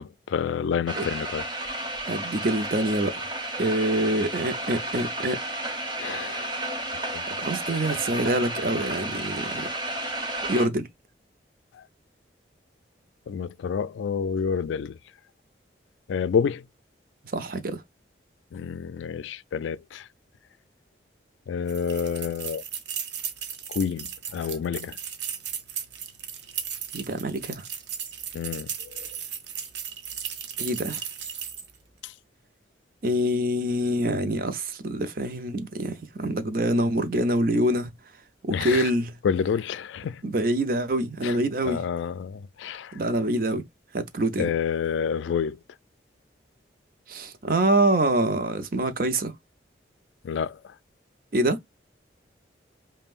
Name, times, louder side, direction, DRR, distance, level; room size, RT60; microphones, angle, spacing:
voice 1, 0.0-1.4 6.0-6.7 7.1-7.2 11.7-11.8 13.3-15.0 16.1-16.7 18.5-20.1 21.5-22.6 23.7-25.0 28.3-29.1 32.0-32.1 38.5-38.9 39.2-40.2 41.2-41.4 41.6-43.0 44.4-45.6 50.2-50.7, left 7 dB, 85° left, 0.3 m, -29 dB
sound 1, 0.9-10.7, right 1 dB, 25° right, 1.1 m, -32 dB
voice 2, 2.0-3.3 3.6-5.4 7.4-9.7 10.4-10.9 17.3-17.8 26.9-27.6 30.6-31.0 33.0-37.9 38.4-39.1 40.2-41.8 42.9-43.6 43.9-44.5 47.1-49.3 51.3-51.6, right 1 dB, 50° right, 0.6 m, -25 dB
sound 2, 21.7-31.8, right 8 dB, 75° right, 0.8 m, -36 dB
5.4 x 2.2 x 2.5 m
head